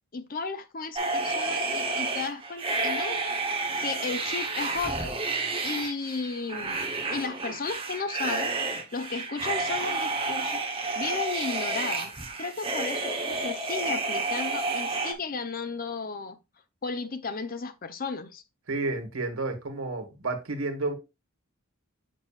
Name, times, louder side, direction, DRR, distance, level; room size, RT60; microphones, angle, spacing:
voice 1, 0.1-3.2 3.8-5.2 5.6-6.8 7.1-8.5 8.9-10.6 11.0-12.1 12.4-16.4 16.8-18.4, left 4 dB, 40° left, 0.6 m, -34 dB
sound 1, 1.0-15.1, right 3 dB, 25° right, 0.8 m, -30 dB
voice 2, 18.7-20.9, right 3 dB, 75° right, 1.5 m, -31 dB
7.1 x 6.0 x 2.4 m
head